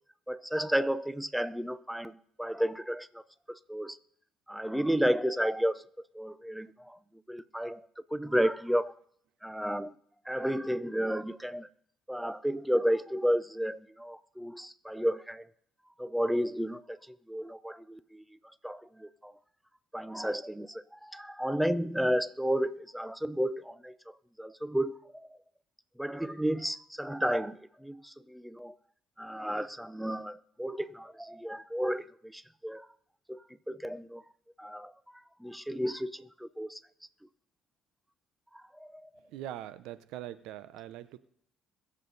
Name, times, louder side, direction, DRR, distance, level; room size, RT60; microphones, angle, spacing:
voice 1, 0.3-3.2 3.5-4.0 4.5-5.8 6.1-7.0 7.3-7.8 8.1-8.9 9.4-9.9 10.3-11.7 12.1-15.5 16.0-17.0 17.3-18.2 18.6-19.3 19.9-23.9 24.4-25.3 26.0-28.7 29.2-32.9 33.3-33.4 33.7-34.2 34.6-34.9 35.4-36.8 38.8-39.1, equal, 5° right, 0.7 m, -32 dB
voice 2, 39.3-41.2, right 12 dB, 80° right, 0.7 m, -42 dB
22.0 x 7.6 x 4.0 m
supercardioid pair, 85°, 0 cm